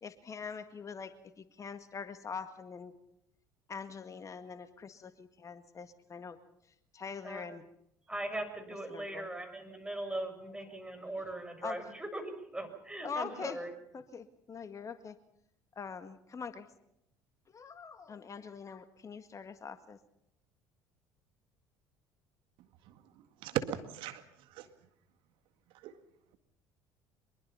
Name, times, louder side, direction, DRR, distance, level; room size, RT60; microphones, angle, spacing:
voice 1, 0.0-3.0 3.7-6.4 6.9-7.6 8.9-9.3 11.6-11.8 13.0-13.6 13.9-15.2 15.8-16.7 17.5-20.0, left 6 dB, 35° left, 10 dB, 1.8 m, -43 dB
voice 2, 8.1-13.7, right 1 dB, 10° right, 7 dB, 6.4 m, -40 dB
voice 3, 23.4-24.2 24.6-24.7 25.8-25.9, right 11 dB, 65° right, 9 dB, 1.9 m, -35 dB
24.5 x 22.0 x 5.7 m, 0.77 s
hypercardioid pair, 65°, 9 cm